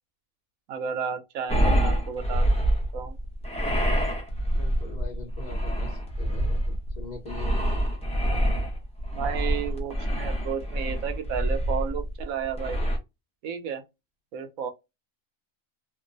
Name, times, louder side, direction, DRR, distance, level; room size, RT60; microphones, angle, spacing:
voice 1, 0.7-2.5 2.9-3.2 9.1-12.8 13.4-13.8 14.3-14.7, right 7 dB, 85° right, 1.1 m, -32 dB
sound 1, 1.5-13.0, equal, 5° left, 0.5 m, -26 dB
voice 2, 4.5-7.9, left 2 dB, 40° left, 0.8 m, -43 dB
2.9 x 2.1 x 2.5 m
omnidirectional pair, 1.4 m